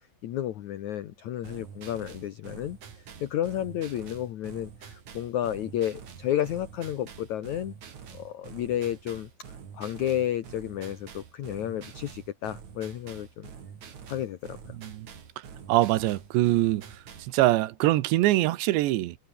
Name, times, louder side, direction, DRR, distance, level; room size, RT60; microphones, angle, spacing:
voice 1, 0.2-2.8 3.2-7.7 8.1-13.5 14.1-14.7, left 11 dB, 80° left, 1.6 m, -32 dB
sound 1, 1.4-17.4, right 7 dB, 45° right, 3.8 m, -46 dB
voice 2, 14.7-15.1 15.7-16.9 17.2-19.2, right 16 dB, 80° right, 3.3 m, -23 dB
omnidirectional pair, 5.0 m